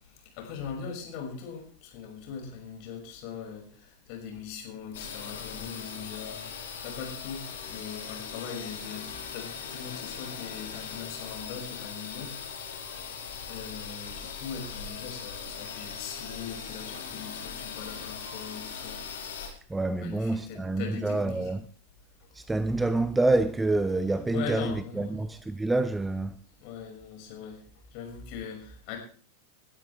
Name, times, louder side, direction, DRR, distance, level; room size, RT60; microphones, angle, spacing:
voice 1, 0.4-6.4 6.8-9.1 9.3-12.3 13.5-19.1 20.0-21.5 24.3-25.2 26.6-27.6 27.9-29.0, left 6 dB, 45° left, 5.9 m, -40 dB
sound 1, 4.9-19.5, left 6 dB, 60° left, 4.5 m, -40 dB
voice 2, 19.7-21.7 22.3-26.4, right 2 dB, 10° right, 0.7 m, -27 dB
20.0 x 12.0 x 3.5 m
figure-of-eight pair, 90°, 0 cm